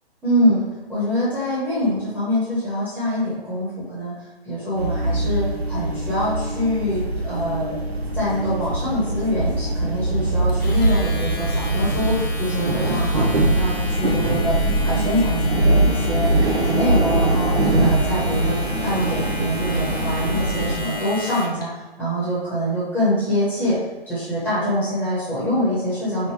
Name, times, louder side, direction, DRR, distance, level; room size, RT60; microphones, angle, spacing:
voice 1, 0.2-0.6 0.9-4.2 4.4-7.8 8.1-16.3 16.6-17.5 17.8-23.8 24.1-26.3, equal, 5° right, -11 dB, 1.0 m, -24 dB
sound 1, 4.8-20.8, right 1 dB, 80° right, 0.9 m, -22 dB
Domestic sounds home sounds, 10.5-21.6, left 3 dB, 20° left, 0.5 m, -34 dB
5.2 x 2.1 x 4.6 m, 1.2 s
hypercardioid pair, 155°, 31 cm